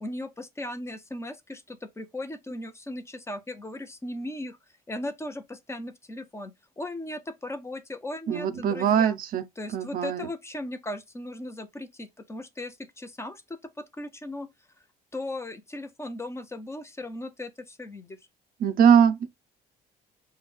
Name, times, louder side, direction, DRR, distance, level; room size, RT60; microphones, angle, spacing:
voice 1, 0.0-4.6 4.9-9.2 9.6-14.5 15.1-18.2, left 1 dB, 15° left, 0.7 m, -37 dB
voice 2, 8.3-9.4 9.7-10.3 18.6-19.3, right 8 dB, 55° right, 0.5 m, -21 dB
5.2 x 2.3 x 3.3 m
cardioid pair, 110°, 17 cm